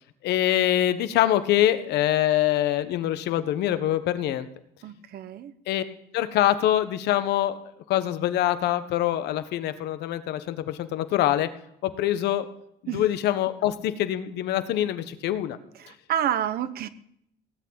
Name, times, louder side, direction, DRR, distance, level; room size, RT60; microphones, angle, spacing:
voice 1, 0.2-4.5 5.7-5.8 6.1-7.6 7.9-11.5 11.8-12.5 12.9-15.6, left 12 dB, 80° left, 11 dB, 1.3 m, -24 dB
voice 2, 4.8-5.5 12.9-13.0 15.8-16.9, right 10 dB, 65° right, 14 dB, 1.1 m, -29 dB
18.0 x 8.7 x 8.8 m, 0.73 s
cardioid pair, 110°, 17 cm